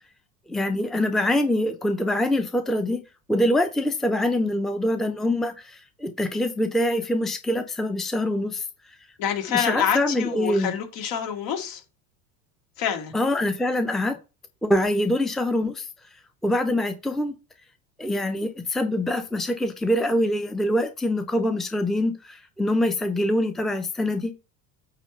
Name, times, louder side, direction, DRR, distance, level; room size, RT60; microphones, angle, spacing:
voice 1, 0.5-3.0 3.3-9.0 9.5-10.7 13.1-14.2 14.6-15.9 16.4-17.4 18.0-24.3, left 1 dB, ahead, 0.8 m, -24 dB
voice 2, 9.2-11.8 12.8-13.1, left 8 dB, 60° left, 2.5 m, -27 dB
9.0 x 3.1 x 5.5 m
hypercardioid pair, 75°, 49 cm